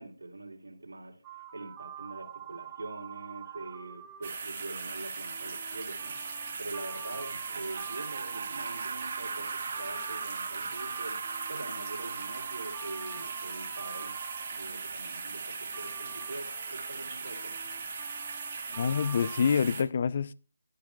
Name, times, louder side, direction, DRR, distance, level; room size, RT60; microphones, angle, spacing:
voice 1, 0.0-14.2 14.4-17.5, right 2 dB, 70° right, 2.8 m, -44 dB
sound 1, 1.2-15.0 15.7-19.6, right 8 dB, 10° right, 1.0 m, -46 dB
sound 2, 4.2-19.8, right 5 dB, 35° right, 1.8 m, -39 dB
Laughter, 7.1-13.9, right 4 dB, 50° right, 0.9 m, -42 dB
voice 2, 18.8-20.3, left 6 dB, 40° left, 0.4 m, -26 dB
12.5 x 10.5 x 2.3 m
figure-of-eight pair, 160°, 0 cm